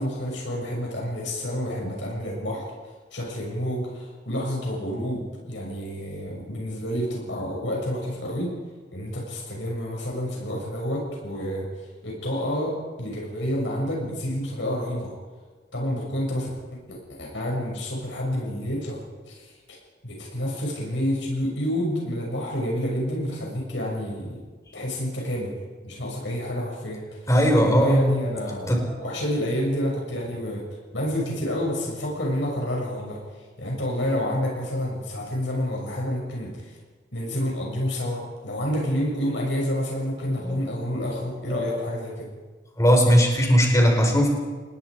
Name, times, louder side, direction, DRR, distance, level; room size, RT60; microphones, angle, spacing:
voice 1, 0.0-2.7 3.1-8.5 8.9-11.7 12.0-15.1 15.7-19.0 19.3-19.8 20.0-24.4 24.7-25.5 25.8-27.0 27.6-28.7 29.0-30.6 30.9-33.2 33.6-36.7 37.1-42.3, equal, 80° left, -1 dB, 6.3 m, -29 dB
voice 2, 27.3-28.3 28.6-29.0 40.4-40.6 41.5-41.8 42.8-44.3, equal, 20° left, 1 dB, 4.8 m, -19 dB
28.5 x 20.0 x 4.9 m, 1.4 s
head